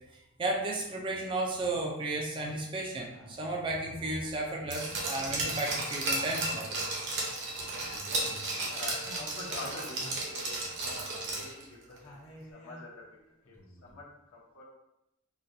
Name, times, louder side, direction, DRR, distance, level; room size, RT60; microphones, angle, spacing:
voice 1, 0.4-6.7, right 2 dB, 25° right, -1 dB, 0.3 m, -33 dB
vocal loop plus amb, 3.1-4.0 4.5-7.2 7.5-13.1 13.4-13.9, equal, 30° left, 0.7 m, -52 dB
Glass, 4.7-11.6 12.0-12.1, right 2 dB, 55° right, 0.7 m, -34 dB
voice 2, 8.6-12.0 12.5-13.0 13.5-13.6 13.8-14.6, left 2 dB, 60° left, -2 dB, 0.7 m, -45 dB
3.8 x 2.2 x 2.6 m, 0.88 s
head